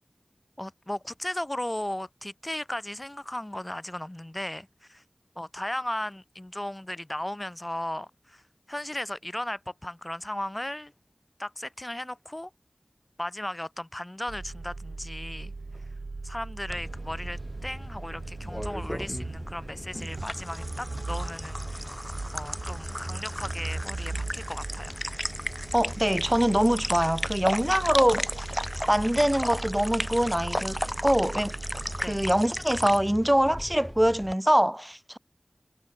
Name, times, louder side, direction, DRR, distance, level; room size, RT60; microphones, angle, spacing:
voice 1, 0.6-5.0 5.3-8.4 8.7-10.9 11.4-12.5 13.2-15.5 16.2-22.0 22.3-25.0 32.0-32.2, left 1 dB, 25° left, 4.7 m, -36 dB
sound 1, 14.3-32.4, right 3 dB, 85° right, 2.5 m, -39 dB
sound 2, 16.7-34.3, equal, 5° left, 5.1 m, -35 dB
voice 2, 25.7-28.3 28.9-31.5 32.0-35.2, equal, 10° right, 0.8 m, -24 dB
wide cardioid pair, 50°, 0 cm